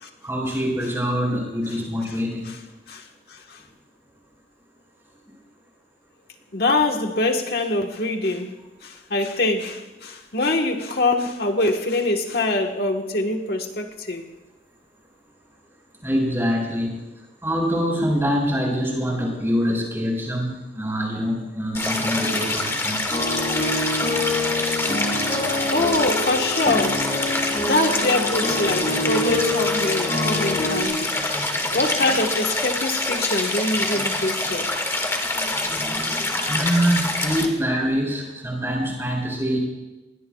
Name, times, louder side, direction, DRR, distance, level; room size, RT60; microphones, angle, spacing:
voice 1, 0.2-2.5 16.0-17.0 17.4-23.0 36.5-39.6, equal, 15° right, -2 dB, 6.2 m, -24 dB
voice 2, 6.5-8.5 8.8-14.2 25.7-27.1 27.6-31.2 31.7-34.7, left 2 dB, 60° left, 2 dB, 1.4 m, -24 dB
Stream, 21.7-37.5, left 2 dB, 15° left, 1.9 m, -25 dB
sound 1, 23.1-30.8, left 2 dB, 30° left, 6.3 m, -26 dB
28.5 x 21.0 x 2.4 m, 1.1 s
head